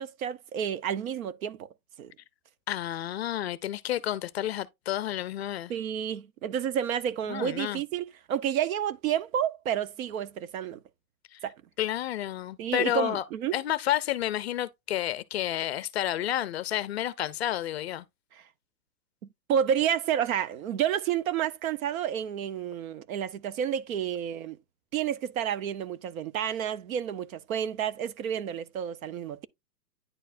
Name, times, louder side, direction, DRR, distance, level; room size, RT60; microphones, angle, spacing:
voice 1, 0.0-1.7 2.0-2.1 5.7-10.8 11.4-11.5 12.6-13.6 18.3-18.4 19.5-24.6 24.9-29.5, right 9 dB, 60° right, 0.7 m, -30 dB
voice 2, 2.7-5.7 7.3-7.8 11.3-11.4 11.8-13.2 13.5-18.1, left 12 dB, 40° left, 0.5 m, -30 dB
9.9 x 4.6 x 2.5 m
hypercardioid pair, 150°, 49 cm